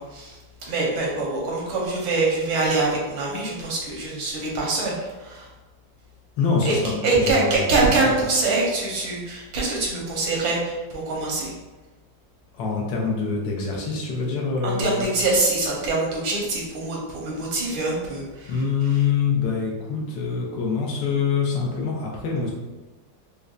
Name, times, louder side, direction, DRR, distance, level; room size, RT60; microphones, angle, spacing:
voice 1, 0.0-5.5 6.6-6.7 7.0-11.5 14.6-18.5, right 3 dB, 85° right, -3 dB, 1.7 m, -24 dB
voice 2, 6.4-8.2 12.5-15.1 18.5-22.5, left 5 dB, 75° left, -2 dB, 1.4 m, -25 dB
5.2 x 2.1 x 2.4 m, 1.2 s
omnidirectional pair, 2.0 m